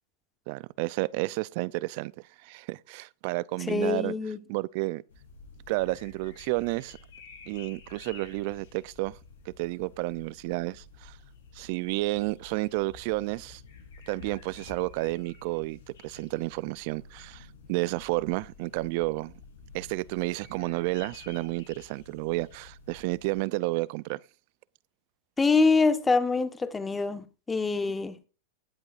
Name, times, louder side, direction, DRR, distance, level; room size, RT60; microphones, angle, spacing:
voice 1, 0.5-2.1 2.4-4.1 4.5-5.0 5.7-7.0 7.5-9.2 9.5-11.2 11.5-13.6 14.1-19.3 19.7-24.2, right 21 dB, 60° right, 0.4 m, -31 dB
voice 2, 3.7-4.4 25.4-28.2, left 4 dB, 15° left, 1.2 m, -25 dB
sound 1, 5.1-23.4, left 4 dB, 85° left, 3.6 m, -51 dB
19.0 x 7.9 x 2.5 m
hypercardioid pair, 115°, 0 cm